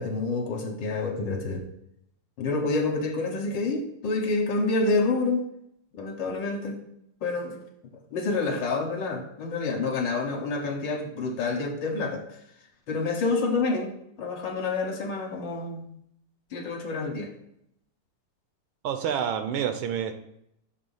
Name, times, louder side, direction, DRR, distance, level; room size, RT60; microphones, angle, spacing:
voice 1, 0.0-1.6 2.4-5.4 5.9-6.8 7.2-7.6 8.1-12.2 12.9-13.9 14.2-15.9 16.5-17.3, left 3 dB, 65° left, 2 dB, 1.5 m, -28 dB
voice 2, 18.8-20.1, right 8 dB, 75° right, 8 dB, 1.4 m, -28 dB
6.8 x 3.4 x 5.4 m, 0.76 s
omnidirectional pair, 2.4 m